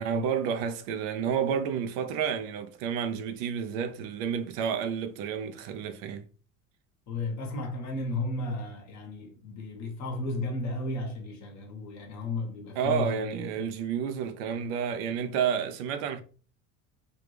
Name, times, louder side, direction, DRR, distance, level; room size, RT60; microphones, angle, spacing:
voice 1, 0.0-6.2 12.8-16.2, right 7 dB, 80° right, 0.6 m, -30 dB
voice 2, 7.1-13.7 14.5-14.6, left 2 dB, 45° left, 1.2 m, -34 dB
3.5 x 2.3 x 3.3 m
supercardioid pair, 110°, 39 cm